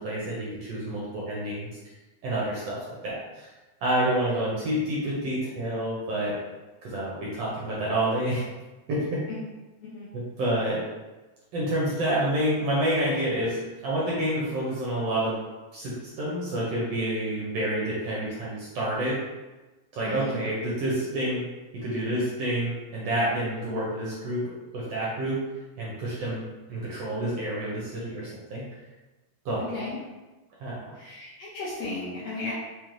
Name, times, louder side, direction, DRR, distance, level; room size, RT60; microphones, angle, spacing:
voice 1, 0.0-1.7 2.2-3.5 3.8-6.4 6.8-8.4 8.9-9.2 10.1-10.9 11.5-15.4 15.7-19.2 19.9-21.5 21.7-25.4 25.8-26.4 26.7-28.6 29.4-29.8 30.6-31.0, right 1 dB, 70° right, -6 dB, 1.5 m, -28 dB
voice 2, 20.0-20.4 29.7-30.0 30.9-32.5, left 3 dB, 70° left, -8 dB, 1.5 m, -35 dB
5.4 x 2.1 x 3.1 m, 1.1 s
omnidirectional pair, 3.4 m